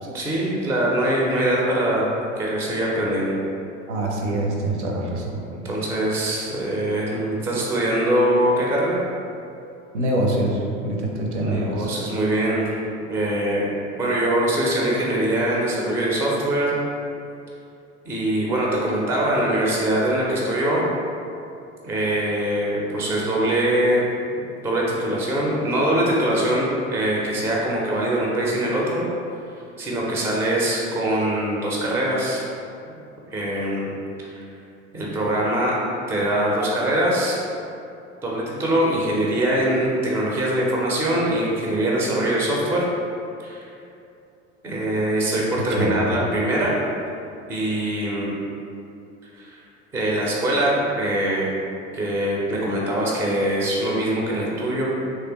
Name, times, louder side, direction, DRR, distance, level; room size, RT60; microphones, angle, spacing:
voice 1, 0.1-2.1 2.4-3.3 5.6-9.0 11.4-12.8 13.1-13.7 14.0-16.7 18.1-20.8 21.8-24.1 24.6-29.0 29.8-32.4 33.3-33.9 34.9-35.8 36.1-37.4 38.2-42.8 43.4-43.7 44.6-46.7 47.5-48.3 49.4-49.6 49.9-51.5 51.9-54.9, right 1 dB, 5° right, -4 dB, 0.3 m, -23 dB
voice 2, 3.9-5.4 9.9-11.9 45.7-45.9, right 1 dB, 70° right, -1 dB, 0.6 m, -25 dB
3.2 x 2.7 x 2.8 m, 2.6 s
figure-of-eight pair, 75°, 36 cm